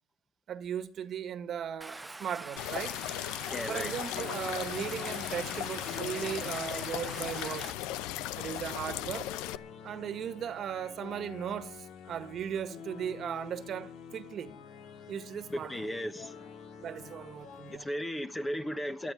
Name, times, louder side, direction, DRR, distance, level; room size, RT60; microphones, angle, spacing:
voice 1, 0.5-3.0 3.7-7.7 8.3-9.3 9.8-14.5 15.1-15.9 16.8-17.9, right 9 dB, 50° right, 1.6 m, -37 dB
Stream, 1.8-7.7, right 2 dB, 10° right, 0.7 m, -44 dB
sound 1, 2.6-9.6, left 14 dB, 90° left, 0.7 m, -37 dB
voice 2, 3.5-3.9 15.5-16.4 17.7-19.1, equal, 10° left, 1.2 m, -35 dB
sound 2, 4.1-17.8, left 7 dB, 65° left, 2.0 m, -47 dB
18.0 x 12.5 x 5.1 m
cardioid pair, 120°, 0 cm